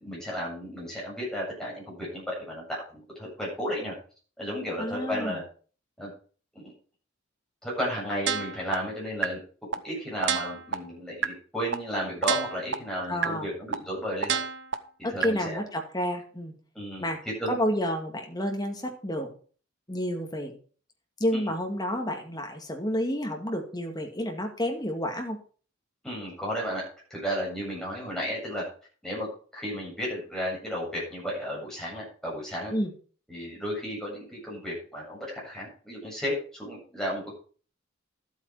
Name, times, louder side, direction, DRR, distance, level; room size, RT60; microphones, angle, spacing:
voice 1, 0.0-3.9 4.4-5.4 6.0-6.1 6.5-6.7 7.6-9.4 9.8-14.4 15.1-15.6 16.7-17.6 21.3-21.5 26.0-26.8 27.1-28.6 29.0-29.3 29.5-32.7 33.3-37.3, equal, 5° left, -5 dB, 7.6 m, -33 dB
voice 2, 4.8-5.4 13.1-13.5 15.0-16.5 17.0-17.2 17.5-19.3 19.9-20.5 21.2-25.4 32.7-32.9, equal, 20° left, 2 dB, 2.2 m, -30 dB
sound 1, 8.3-8.7 9.2-9.3 9.7-9.8 10.2-10.7 11.2-11.3 11.7-11.8 12.2-12.7 13.2-13.3 13.7-13.8 14.2-14.7 15.2-15.3, right 7 dB, 60° right, 0.9 m, -27 dB
12.5 x 8.4 x 4.7 m, 0.40 s
head